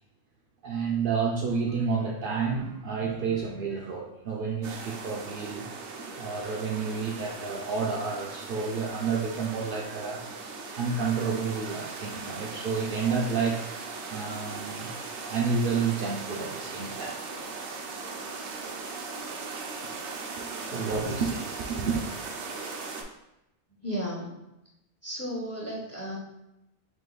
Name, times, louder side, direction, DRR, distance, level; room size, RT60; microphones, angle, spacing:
voice 1, 0.6-5.7 6.2-10.2 10.8-13.7 14.1-15.0 15.3-17.2 19.6-20.0 20.4-22.0, right 5 dB, 60° right, -1 dB, 0.7 m, -30 dB
sound 1, 4.6-23.0, right 4 dB, 85° right, 1.0 m, -39 dB
voice 2, 23.8-24.4 25.0-26.2, equal, 15° left, -3 dB, 0.8 m, -34 dB
4.9 x 2.6 x 3.8 m, 0.89 s
omnidirectional pair, 1.1 m